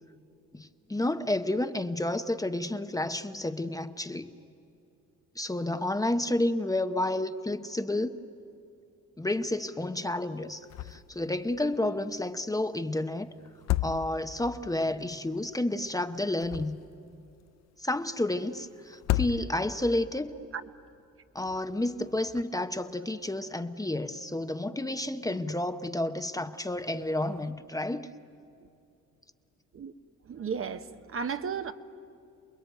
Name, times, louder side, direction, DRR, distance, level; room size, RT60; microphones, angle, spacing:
voice 1, 0.5-4.3 5.4-8.2 9.2-13.3 13.8-16.8 17.8-20.4 21.3-28.1, left 1 dB, 10° left, 9 dB, 0.9 m, -30 dB
sound 1, 10.7-11.2 11.5-11.6 13.5-14.5 16.2-17.1 18.9-19.9, left 15 dB, 60° left, 0.6 m, -31 dB
voice 2, 30.3-31.7, right 6 dB, 45° right, 9 dB, 1.1 m, -34 dB
28.5 x 21.0 x 9.2 m, 2.6 s
cardioid pair, 90°, 30 cm